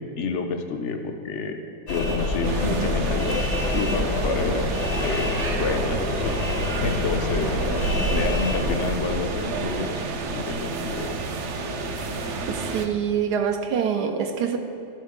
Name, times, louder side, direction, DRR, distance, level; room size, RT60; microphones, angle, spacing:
voice 1, 0.2-1.6 1.9-4.7 5.0-5.3 5.6-6.4 6.8-7.5 8.1-11.1, left 4 dB, 65° left, 5 dB, 0.8 m, -29 dB
sound 1, 1.9-8.8, left 2 dB, 85° left, 1.8 m, -26 dB
sound 2, 2.4-12.9, right 3 dB, 60° right, 0.8 m, -30 dB
voice 2, 12.5-14.6, right 7 dB, 80° right, 6 dB, 1.3 m, -25 dB
12.5 x 7.4 x 3.7 m, 2.8 s
omnidirectional pair, 1.7 m